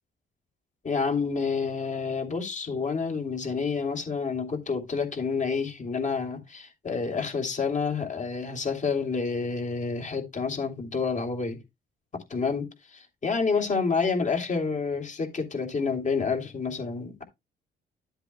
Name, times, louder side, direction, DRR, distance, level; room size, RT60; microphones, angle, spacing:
voice 1, 0.8-11.6 12.3-17.2, left 5 dB, 40° left, 3.2 m, -29 dB
13.0 x 8.0 x 2.3 m
cardioid pair, 90°, 20 cm